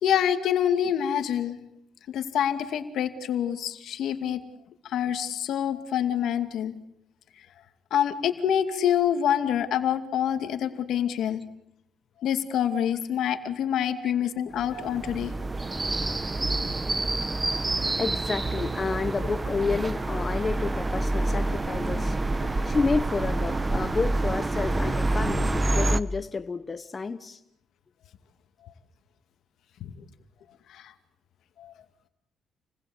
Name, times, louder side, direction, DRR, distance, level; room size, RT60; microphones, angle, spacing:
voice 1, 0.0-1.6 2.1-4.4 4.8-6.7 7.9-11.4 12.2-15.3 29.8-29.9 30.7-30.9 31.6-31.7, left 9 dB, 75° left, 2.4 m, -26 dB
sound 1, 14.5-26.0, right 2 dB, 20° right, 1.1 m, -27 dB
voice 2, 18.0-22.2 22.7-27.4, left 4 dB, 30° left, 1.1 m, -30 dB
29.0 x 20.5 x 7.9 m
cardioid pair, 90°, 0 cm